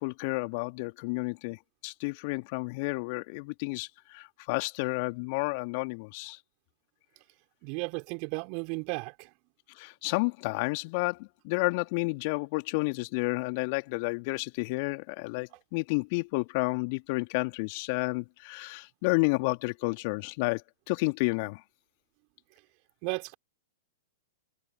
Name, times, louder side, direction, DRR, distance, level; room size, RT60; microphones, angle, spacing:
voice 1, 0.0-6.4 9.7-21.6, left 29 dB, 45° left, 2.7 m, -31 dB
voice 2, 7.6-9.3 23.0-23.4, right 37 dB, 40° right, 3.9 m, -34 dB
figure-of-eight pair, 105°, 0 cm